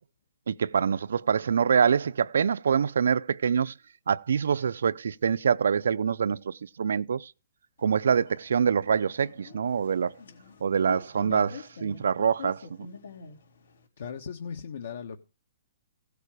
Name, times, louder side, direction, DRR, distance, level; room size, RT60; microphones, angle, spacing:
voice 1, 0.5-3.7 4.1-7.3 7.8-10.1 10.6-11.5 11.8-12.9, right 7 dB, 70° right, 0.5 m, -25 dB
sound 1, 7.8-13.9, left 5 dB, 85° left, 3.9 m, -47 dB
voice 2, 14.0-15.3, left 6 dB, 55° left, 1.1 m, -37 dB
16.5 x 6.8 x 4.8 m
hypercardioid pair, 180°, 0 cm